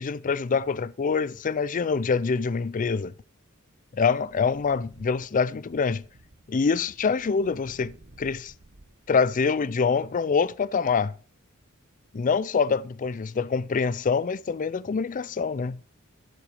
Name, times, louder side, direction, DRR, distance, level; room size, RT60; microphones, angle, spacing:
voice 1, 0.0-3.1 3.9-6.0 6.5-8.5 9.1-11.1 12.1-15.8, left 5 dB, 40° left, 0.4 m, -25 dB
sound 1, 4.5-10.0, right 1 dB, 50° right, 1.1 m, -55 dB
12.0 x 7.7 x 4.9 m
head